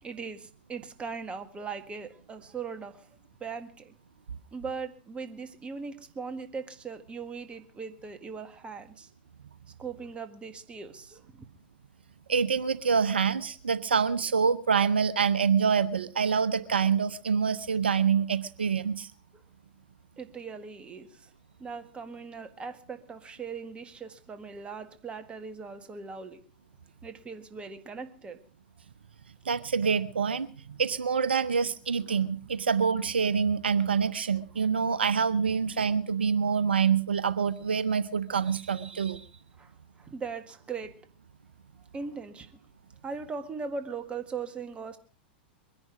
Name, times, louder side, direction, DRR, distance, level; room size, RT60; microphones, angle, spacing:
voice 1, 0.0-3.1 3.4-3.9 4.5-9.1 9.8-11.5 19.3-19.4 20.2-21.3 21.6-26.4 27.0-28.4 39.6-39.7 40.0-41.0 41.9-42.6 43.0-45.0, right 5 dB, 20° right, 9 dB, 1.8 m, -39 dB
voice 2, 12.3-19.1 29.4-39.3, right 6 dB, 90° right, 15 dB, 0.7 m, -26 dB
22.5 x 10.5 x 4.9 m, 0.38 s
hypercardioid pair, 105°, 5 cm